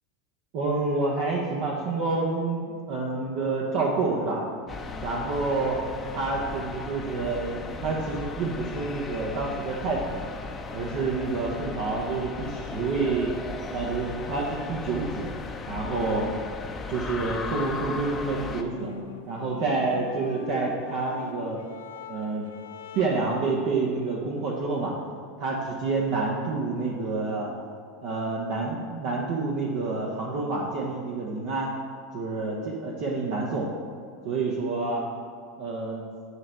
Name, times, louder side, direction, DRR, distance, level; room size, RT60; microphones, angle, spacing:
voice 1, 0.5-4.4 5.0-5.8 6.1-10.3 10.7-13.3 13.7-15.3 15.7-16.3 16.9-18.9 19.3-21.6 22.1-22.5 22.9-24.9 25.4-27.5 28.0-31.7 32.1-33.7 34.2-35.0 35.6-36.1, right 3 dB, 55° right, -2 dB, 1.0 m, -28 dB
sound 1, 4.7-18.6, left 4 dB, 25° left, 0.6 m, -36 dB
sound 2, 18.4-23.4, left 6 dB, 70° left, 0.4 m, -41 dB
9.4 x 3.2 x 6.5 m, 2.2 s
figure-of-eight pair, 80°, 0 cm